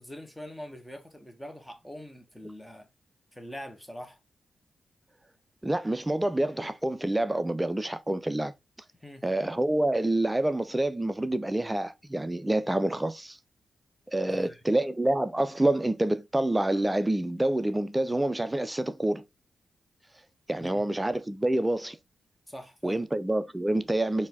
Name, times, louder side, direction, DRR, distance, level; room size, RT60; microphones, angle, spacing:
voice 1, 0.0-2.9 3.3-4.2 9.0-9.2 14.2-14.6 20.6-20.8 22.5-23.0, equal, 5° left, 1.1 m, -43 dB
voice 2, 5.6-8.5 9.2-13.4 14.1-19.2 20.5-22.0 22.8-24.3, right 1 dB, 15° right, 0.4 m, -27 dB
4.2 x 2.7 x 3.6 m
cardioid pair, 80°, 0 cm